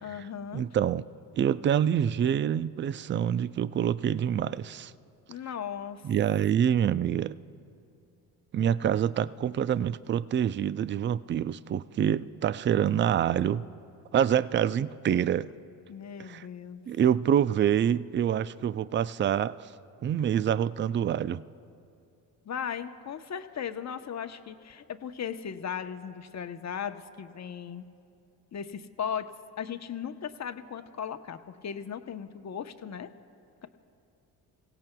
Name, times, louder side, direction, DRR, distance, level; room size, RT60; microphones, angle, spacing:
voice 1, 0.0-0.6 5.3-6.1 15.9-16.8 22.4-27.8 28.5-29.3 29.6-33.1, left 8 dB, 35° left, 8 dB, 0.9 m, -37 dB
voice 2, 0.5-1.0 1.4-4.9 6.0-7.4 8.5-13.7 14.1-15.5 16.2-16.5 16.9-19.7 20.0-21.4, right 9 dB, 30° right, 17 dB, 0.4 m, -26 dB
29.5 x 17.0 x 2.3 m, 2.5 s
hypercardioid pair, 60°, 44 cm